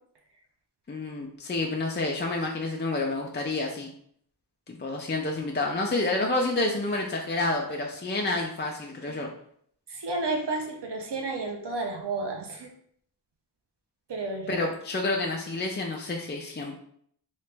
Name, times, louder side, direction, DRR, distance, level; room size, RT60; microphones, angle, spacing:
voice 1, 0.9-3.9 4.7-9.3 14.5-16.8, left 2 dB, 25° left, 0 dB, 0.5 m, -29 dB
voice 2, 9.9-12.7 14.1-14.6, right 3 dB, 90° right, 3 dB, 0.7 m, -32 dB
3.2 x 2.9 x 3.3 m, 0.66 s
wide cardioid pair, 45°, 40 cm